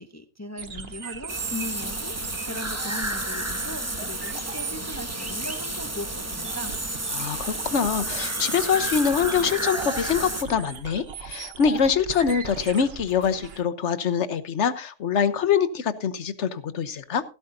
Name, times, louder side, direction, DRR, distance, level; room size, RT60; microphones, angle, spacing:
voice 1, 0.0-2.2 2.4-6.7, left 1 dB, 15° left, 0.7 m, -38 dB
sound 1, 0.6-13.6, right 5 dB, 55° right, 1.3 m, -39 dB
sound 2, 1.3-10.4, right 1 dB, 15° right, 1.1 m, -31 dB
voice 2, 7.1-17.2, left 7 dB, 65° left, 1.3 m, -24 dB
16.0 x 13.0 x 2.7 m
omnidirectional pair, 1.3 m